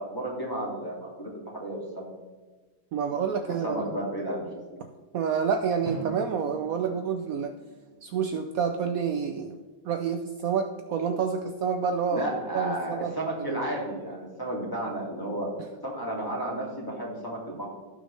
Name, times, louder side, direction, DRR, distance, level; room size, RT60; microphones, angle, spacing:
voice 1, 0.0-2.1 3.5-4.4 12.1-15.5 15.8-17.7, right 1 dB, 10° left, -3 dB, 2.3 m, -32 dB
voice 2, 2.9-3.8 5.1-7.5 8.0-9.6 9.8-12.3 12.5-13.1 13.4-13.6, right 6 dB, 80° right, 7 dB, 0.7 m, -28 dB
Drum, 5.8-8.5, right 4 dB, 40° right, 2.3 m, -43 dB
17.0 x 6.4 x 3.3 m, 1.3 s
omnidirectional pair, 2.1 m